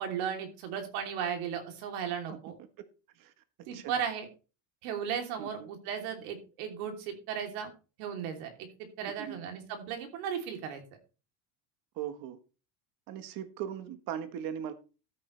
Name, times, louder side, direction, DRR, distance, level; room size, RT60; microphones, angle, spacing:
voice 1, 0.0-2.5 3.7-4.3 4.8-7.7 8.0-8.7 9.0-10.8, right 8 dB, 85° right, 4 dB, 3.3 m, -36 dB
voice 2, 5.4-5.7 9.0-9.4 11.9-12.4 13.1-14.7, right 9 dB, 50° right, 10 dB, 1.3 m, -39 dB
13.0 x 9.3 x 3.3 m, 0.33 s
cardioid pair, 160°, 43 cm